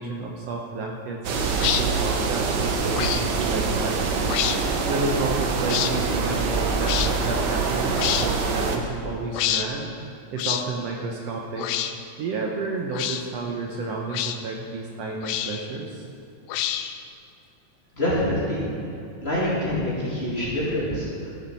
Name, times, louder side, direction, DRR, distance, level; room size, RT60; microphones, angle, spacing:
voice 1, 0.0-4.4 4.9-9.9 10.3-11.7 12.2-16.1, right 3 dB, 70° right, 0 dB, 1.8 m, -31 dB
sound 1, 1.2-8.8, right 4 dB, 85° right, 0.9 m, -25 dB
sound 2, 1.6-1.8 2.9-3.2 4.2-4.6 5.7-5.9 6.8-7.1 8.0-8.3 9.3-9.7 10.4-10.6 11.6-11.9 12.9-13.2 14.1-14.4 15.2-15.7 16.5-17.0, left 11 dB, 80° left, 1.8 m, -27 dB
voice 2, 17.9-18.7 19.2-21.3, left 1 dB, 20° left, -8 dB, 2.7 m, -26 dB
14.0 x 7.4 x 5.5 m, 2.7 s
omnidirectional pair, 3.3 m